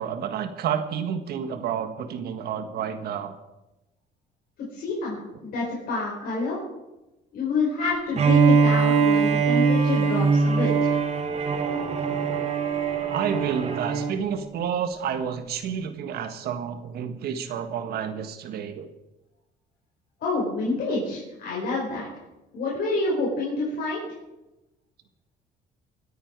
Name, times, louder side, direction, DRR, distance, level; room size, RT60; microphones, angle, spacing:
voice 1, 0.0-3.3 13.1-18.9, right 8 dB, 70° right, 8 dB, 1.6 m, -30 dB
voice 2, 4.7-6.6 7.3-10.9 20.2-22.1 22.5-24.0, left 3 dB, 65° left, -5 dB, 5.4 m, -28 dB
Bowed string instrument, 8.1-14.2, right 5 dB, 40° right, 2.1 m, -22 dB
24.0 x 8.9 x 4.7 m, 0.98 s
cardioid pair, 110°, 17 cm